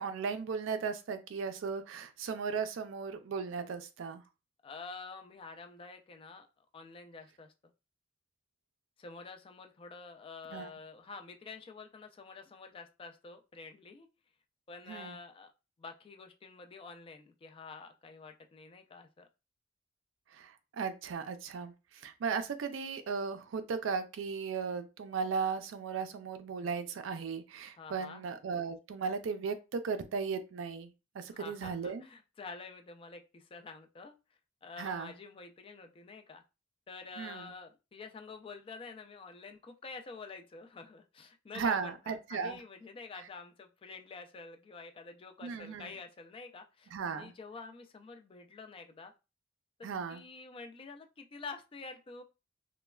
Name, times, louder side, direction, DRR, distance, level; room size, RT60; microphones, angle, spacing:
voice 1, 0.0-4.2 10.5-10.7 14.9-15.2 20.3-32.0 34.8-35.1 37.2-37.5 41.5-42.6 45.4-45.9 46.9-47.3 49.8-50.2, right 5 dB, 75° right, 9 dB, 0.4 m, -36 dB
voice 2, 4.6-7.5 9.0-14.1 14.7-15.5 15.8-19.2 27.8-28.2 31.3-34.1 34.6-36.4 36.9-49.1 49.8-52.2, left 4 dB, 30° left, 7 dB, 0.3 m, -48 dB
3.1 x 2.1 x 2.2 m, 0.28 s
head